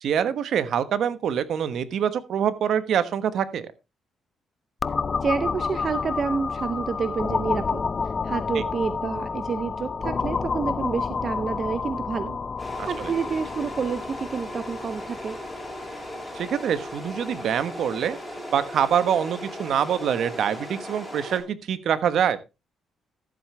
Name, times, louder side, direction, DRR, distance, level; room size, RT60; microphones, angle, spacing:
voice 1, 0.0-3.7 8.5-8.6 12.8-13.1 16.3-18.2 18.5-22.4, right 8 dB, 70° right, 13 dB, 1.2 m, -25 dB
sound 1, 4.8-18.4, left 5 dB, 35° left, 0.5 m, -30 dB
voice 2, 5.2-12.4 12.9-15.4, right 5 dB, 45° right, 12 dB, 0.7 m, -29 dB
sound 2, 12.6-21.4, equal, 5° left, 5.3 m, -37 dB
14.0 x 7.8 x 3.3 m, 0.27 s
cardioid pair, 90°, 0 cm